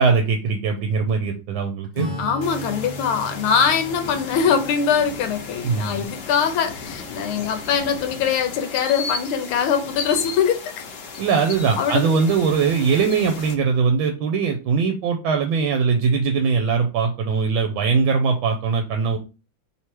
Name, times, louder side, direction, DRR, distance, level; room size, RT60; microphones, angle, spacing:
voice 1, 0.0-2.1 5.6-6.0 11.2-19.2, right 5 dB, 75° right, 1.3 m, -21 dB
Acoustic guitar / Strum, 1.9-7.9, equal, 35° left, 0.6 m, -37 dB
voice 2, 2.2-10.7 11.8-12.1, left 7 dB, 80° left, 1.5 m, -22 dB
sound 1, 2.4-13.5, left 4 dB, 60° left, 1.3 m, -35 dB
3.5 x 3.1 x 4.4 m
omnidirectional pair, 2.4 m